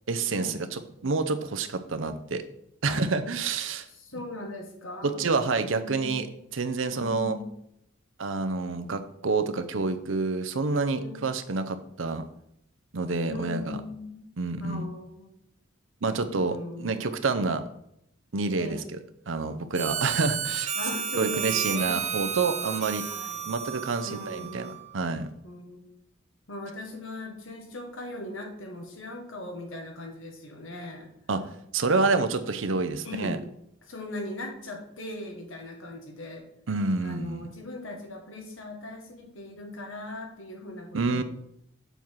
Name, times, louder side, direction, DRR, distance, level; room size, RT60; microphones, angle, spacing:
voice 1, 0.1-2.4 2.8-3.8 5.0-7.4 8.2-12.2 12.9-13.8 14.4-14.9 16.0-17.6 18.3-18.8 19.3-20.7 21.1-23.0 23.5-25.3 31.3-33.4 36.7-37.5 40.9-41.2, right 3 dB, 70° right, 9 dB, 0.7 m, -28 dB
voice 2, 4.0-5.3 5.7-6.2 6.9-7.5 10.9-11.2 13.2-14.2 14.6-15.4 16.4-17.2 18.5-18.9 20.7-22.1 23.0-23.5 24.0-24.9 25.4-25.9 26.5-31.1 33.0-33.4 33.8-36.4 37.0-41.2, left 2 dB, 80° left, 3 dB, 1.7 m, -39 dB
Harmonica, 19.7-24.9, right 8 dB, 35° right, 0.9 m, -32 dB
7.1 x 5.6 x 4.6 m, 0.76 s
head